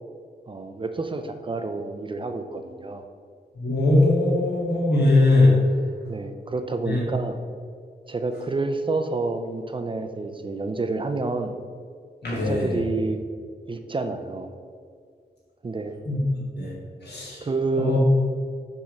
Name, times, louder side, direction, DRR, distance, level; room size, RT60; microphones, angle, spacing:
voice 1, 0.5-3.1 6.1-7.4 8.1-11.5 12.3-13.2 13.6-14.5 15.6-15.9 17.4-18.0, right 3 dB, 30° right, 7 dB, 0.5 m, -29 dB
voice 2, 3.5-5.6 6.9-7.1 12.2-12.8 16.0-16.2 16.6-16.7 17.0-17.5 17.8-18.0, left 2 dB, 80° left, -5 dB, 2.0 m, -20 dB
7.2 x 3.6 x 6.3 m, 2.1 s
wide cardioid pair, 135°, 17 cm